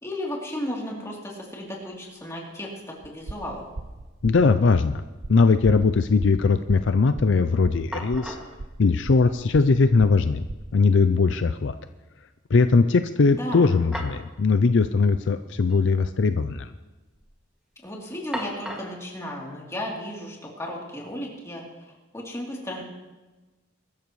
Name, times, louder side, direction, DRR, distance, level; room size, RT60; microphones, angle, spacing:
voice 1, 0.0-3.6 13.3-13.8 17.8-21.6 22.1-22.8, left 1 dB, 15° left, -3 dB, 3.2 m, -34 dB
sound 1, 1.5-1.6 1.8-2.4 2.7-3.6 3.9-4.0 7.4-7.5 7.9-8.6 9.7-9.8 10.2-10.3 13.5-14.3 14.6-14.7 15.6-15.8 16.1-16.6 17.0-17.4 18.3-19.0, equal, 5° right, 2.2 m, -38 dB
sound 2, 3.0-10.8, right 2 dB, 75° right, 0.8 m, -37 dB
voice 2, 4.2-5.0 5.3-8.4 8.8-10.4 10.7-11.7 12.5-16.7, left 4 dB, 65° left, 10 dB, 0.5 m, -20 dB
22.5 x 13.5 x 3.2 m, 1.2 s
head